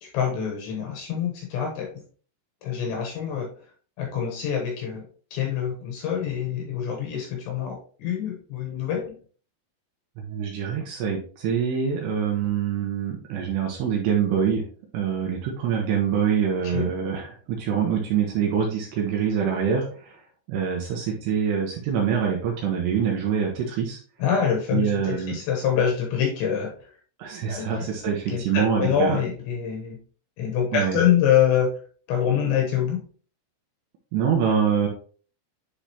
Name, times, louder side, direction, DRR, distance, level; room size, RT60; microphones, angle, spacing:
voice 1, 0.0-1.9 2.6-3.5 4.0-5.0 5.3-9.1 16.6-16.9 24.2-26.9 27.5-27.7 28.3-30.0 30.4-31.8 32.1-33.0, left 8 dB, 70° left, 1 dB, 2.9 m, -25 dB
voice 2, 10.2-14.6 14.9-20.2 20.5-24.0 24.7-25.4 27.2-29.2 30.7-31.0 34.1-34.9, right 7 dB, 75° right, 0 dB, 2.7 m, -25 dB
10.0 x 3.9 x 2.9 m, 0.41 s
omnidirectional pair, 5.9 m